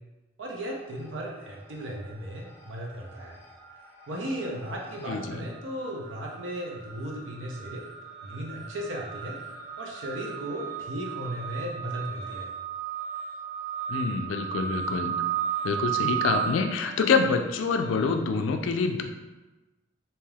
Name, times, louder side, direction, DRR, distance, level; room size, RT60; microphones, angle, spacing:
voice 1, 0.4-3.4 4.1-7.8 8.2-9.4 9.8-12.5, equal, 85° right, -1 dB, 0.6 m, -36 dB
sound 1, 0.8-1.3 1.6-18.2, right 9 dB, 10° left, 0.4 m, -36 dB
voice 2, 5.1-5.4 13.9-15.1 15.6-19.0, left 4 dB, 90° left, 5 dB, 0.3 m, -26 dB
3.2 x 2.8 x 2.3 m, 1.1 s
head